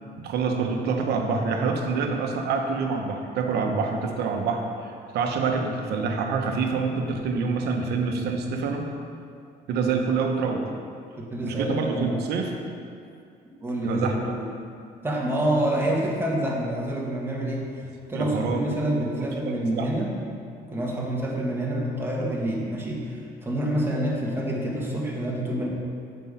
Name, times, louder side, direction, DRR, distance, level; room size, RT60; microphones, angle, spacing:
voice 1, 0.2-8.9 9.7-10.7 11.4-12.5 13.8-14.3 18.1-19.9, right 4 dB, 75° right, 3 dB, 1.0 m, -27 dB
voice 2, 11.2-12.3 13.6-14.5 15.0-17.8 18.1-20.1 20.7-25.7, right 1 dB, 15° right, -3 dB, 1.6 m, -27 dB
7.5 x 5.2 x 5.5 m, 2.4 s
cardioid pair, 110°, 17 cm